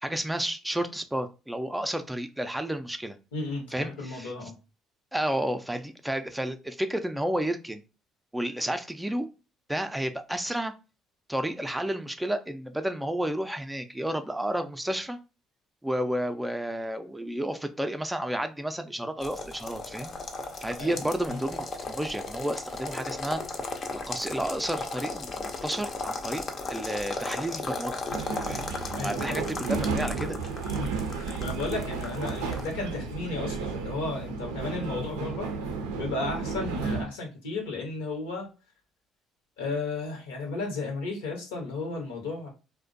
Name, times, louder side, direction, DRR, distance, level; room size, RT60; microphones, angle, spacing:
voice 1, 0.0-3.2 3.7-4.3 5.1-7.8 8.3-9.3 9.7-10.7 11.3-15.2 15.8-20.1 20.6-23.4 23.9-26.4 26.7-28.0 28.5-28.7 29.0-30.4, right 1 dB, 10° right, 0.4 m, -31 dB
voice 2, 3.3-4.5 20.8-21.4 29.0-29.5 30.7-35.5 36.0-38.5 39.6-42.5, left 3 dB, 85° left, 0.8 m, -34 dB
sound 1, 19.2-32.7, left 3 dB, 50° left, 0.5 m, -36 dB
sound 2, 28.1-37.0, right 4 dB, 85° right, 0.4 m, -33 dB
2.5 x 2.1 x 2.4 m
hypercardioid pair, 60°, 0 cm